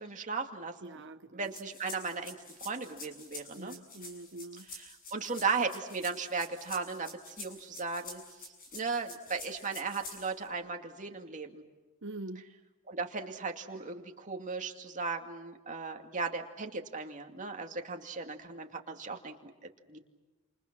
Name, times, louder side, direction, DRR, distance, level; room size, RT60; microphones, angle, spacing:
voice 1, 0.0-1.0 1.3-3.8 4.7-8.2 8.7-11.6 12.9-19.5 19.9-20.0, right 4 dB, 35° right, 2.4 m, -36 dB
voice 2, 0.8-1.5 3.6-4.7 12.0-12.4, right 2 dB, 55° right, 1.0 m, -44 dB
sound 1, 1.4-10.5, left 2 dB, 40° left, 7.3 m, -48 dB
30.0 x 28.0 x 6.1 m
head